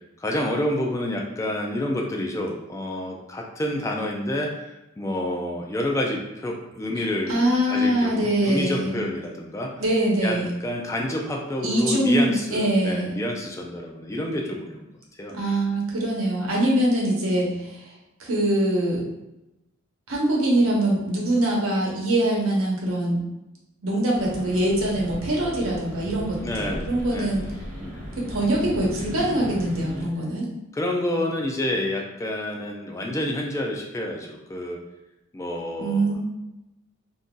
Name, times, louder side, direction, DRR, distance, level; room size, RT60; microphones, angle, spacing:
voice 1, 0.2-9.7 10.2-15.3 26.4-27.4 27.8-28.0 30.7-34.8 35.3-36.2, left 1 dB, 15° left, 0 dB, 0.3 m, -29 dB
voice 2, 7.3-9.0 9.8-10.5 11.6-13.2 15.3-17.8 18.2-19.0 20.1-23.2 23.8-27.4 28.2-30.5 35.8-36.2, right 1 dB, 85° right, -3 dB, 0.9 m, -23 dB
sound 1, 24.1-30.1, equal, 40° right, 0.8 m, -37 dB
2.6 x 2.3 x 3.7 m, 0.93 s
head